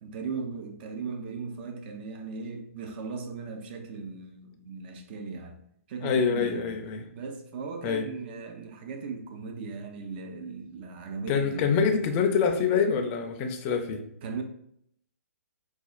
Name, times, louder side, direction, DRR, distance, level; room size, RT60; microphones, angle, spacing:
voice 1, 0.0-5.6 5.9-6.7 7.1-12.1 14.2-14.4, right 4 dB, 40° right, 0.5 m, -38 dB
voice 2, 6.0-7.0 7.8-8.1 11.3-14.0, left 6 dB, 30° left, 0.5 m, -25 dB
4.1 x 2.3 x 2.3 m
hypercardioid pair, 135°, 8 cm